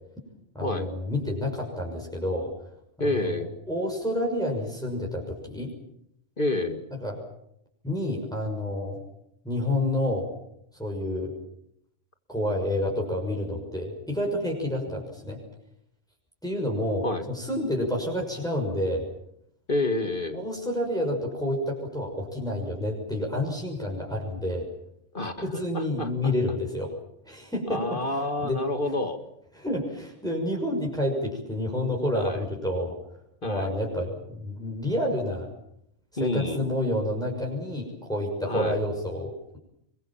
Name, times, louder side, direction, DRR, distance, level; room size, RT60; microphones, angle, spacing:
voice 1, 0.5-2.5 3.0-5.7 6.9-7.2 7.8-9.0 9.4-10.3 10.8-11.3 12.3-15.4 16.4-19.0 20.3-24.7 25.4-26.9 27.3-29.0 29.5-33.0 33.4-35.5 36.1-39.6, left 1 dB, 5° left, -1 dB, 6.1 m, -29 dB
voice 2, 3.0-3.5 6.4-6.8 17.0-17.2 19.7-20.4 25.1-26.3 27.7-29.2 32.1-32.4 33.4-33.7 36.2-36.7 38.4-38.8, left 2 dB, 40° left, 7 dB, 2.2 m, -29 dB
27.0 x 23.0 x 7.4 m, 0.74 s
omnidirectional pair, 1.4 m